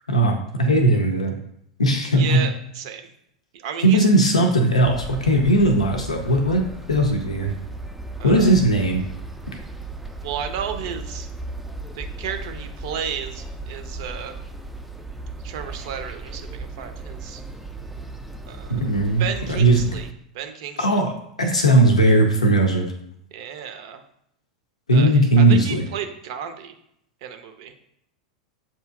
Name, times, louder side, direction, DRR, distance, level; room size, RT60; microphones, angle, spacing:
voice 1, 0.1-1.3 1.8-2.4 3.8-6.6 6.9-7.5 8.2-9.0 18.7-19.9 20.8-21.1 21.4-22.9 24.9-25.8, right 1 dB, 80° left, 3 dB, 0.5 m, -18 dB
voice 2, 2.2-3.1 3.5-4.1 8.2-8.5 10.2-11.3 11.9-14.4 15.4-17.4 18.5-18.9 19.2-20.1 20.3-21.0 23.3-24.0 24.9-26.8 27.2-27.7, right 8 dB, 55° right, 7 dB, 0.5 m, -33 dB
sound 1, 4.8-20.1, right 2 dB, ahead, 0.4 m, -36 dB
7.3 x 2.8 x 2.3 m, 0.75 s
figure-of-eight pair, 90°, 3 cm